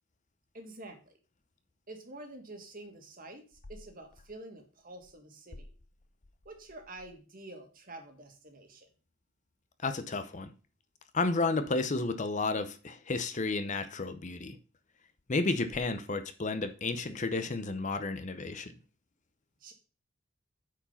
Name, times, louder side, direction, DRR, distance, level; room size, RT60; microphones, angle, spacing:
voice 1, 0.5-1.2 1.9-5.7 6.5-8.9 19.6-19.7, right 2 dB, 45° right, 4 dB, 1.9 m, -48 dB
voice 2, 9.8-10.5 11.1-14.6 15.3-18.7, left 3 dB, 35° left, 9 dB, 0.7 m, -32 dB
8.8 x 4.9 x 5.7 m, 0.36 s
head